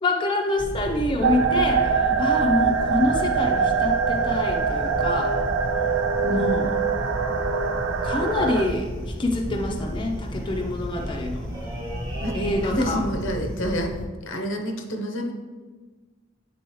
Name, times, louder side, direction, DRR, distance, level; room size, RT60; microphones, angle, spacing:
voice 1, 0.0-5.3 6.3-6.7 8.0-11.5 12.3-13.1, left 2 dB, 25° left, 1 dB, 0.6 m, -26 dB
sound 1, 0.6-14.1, equal, 5° left, 0.9 m, -33 dB
sound 2, 1.2-8.6, right 5 dB, 90° right, 0.5 m, -23 dB
sound 3, 2.6-4.9 5.2-5.4 5.7-6.2 6.5-6.6 6.7-13.1 13.3-13.6, equal, 15° right, 1.1 m, -43 dB
voice 2, 12.2-14.0 14.2-15.3, equal, 85° left, 3 dB, 0.8 m, -29 dB
8.3 x 3.8 x 3.0 m, 1.4 s
head